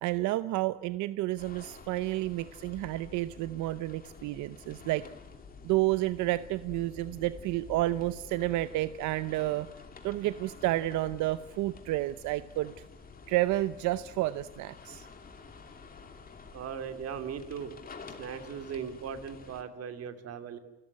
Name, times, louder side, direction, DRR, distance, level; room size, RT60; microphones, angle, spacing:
voice 1, 0.0-5.0 5.6-9.7 10.0-12.8 13.3-15.1, right 16 dB, 90° right, 14 dB, 0.8 m, -30 dB
sound 1, 1.4-19.6, left 5 dB, 30° left, 3.0 m, -50 dB
voice 2, 16.5-17.7 18.2-20.6, right 7 dB, 55° right, 9 dB, 2.7 m, -38 dB
29.5 x 14.0 x 9.8 m, 1.1 s
cardioid pair, 130°, 29 cm